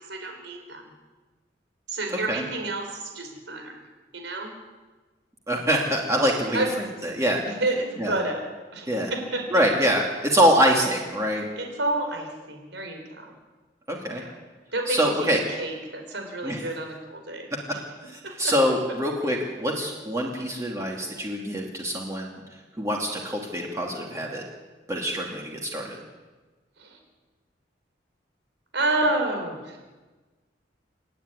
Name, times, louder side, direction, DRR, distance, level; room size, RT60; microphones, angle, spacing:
voice 1, 0.1-0.9 1.9-3.7 4.1-4.5 6.5-6.7 7.4-8.4 8.7-9.6 11.6-13.3 14.1-14.3 14.7-15.0 15.6-17.8 18.2-18.5 26.8-27.0 28.7-29.8, right 2 dB, 80° right, 3 dB, 5.0 m, -29 dB
voice 2, 2.1-2.4 5.5-7.4 8.0-8.1 8.9-9.1 9.5-11.4 13.9-14.2 14.9-15.4 16.4-16.6 17.5-17.8 18.0-22.4 22.8-24.4 24.9-26.0, equal, 15° right, -1 dB, 2.6 m, -25 dB
26.5 x 11.0 x 9.9 m, 1.3 s
head